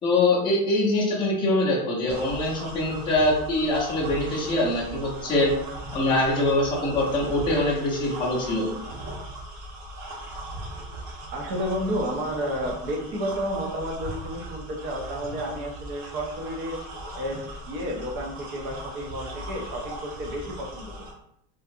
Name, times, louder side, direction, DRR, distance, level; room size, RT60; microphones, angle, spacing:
voice 1, 0.0-5.5 5.9-8.7, left 2 dB, 10° left, -6 dB, 0.6 m, -23 dB
sound 1, 2.1-21.1, right 1 dB, 85° right, 1.1 m, -39 dB
voice 2, 11.3-16.8 17.1-21.1, equal, 35° right, 1 dB, 0.5 m, -31 dB
3.8 x 2.4 x 2.6 m, 0.76 s
cardioid pair, 175°, 39 cm